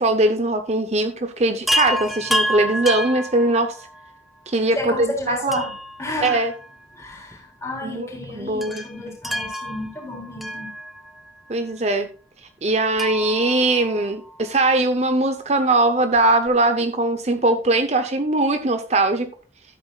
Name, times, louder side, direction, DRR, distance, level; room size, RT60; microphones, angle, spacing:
voice 1, 0.0-3.8 4.5-5.6 6.2-6.5 7.8-8.8 11.5-12.1 12.6-19.3, right 2 dB, 35° right, 8 dB, 0.7 m, -21 dB
Chime, 1.7-4.1 5.5-7.0 7.3-7.4 8.6-11.3 13.0-14.6 16.2-16.3 16.5-16.6, equal, ahead, 0.7 m, -28 dB
voice 2, 4.8-5.7 6.0-6.4 6.9-10.7, left 1 dB, 15° left, -1 dB, 3.6 m, -31 dB
13.5 x 8.5 x 2.3 m, 0.36 s
head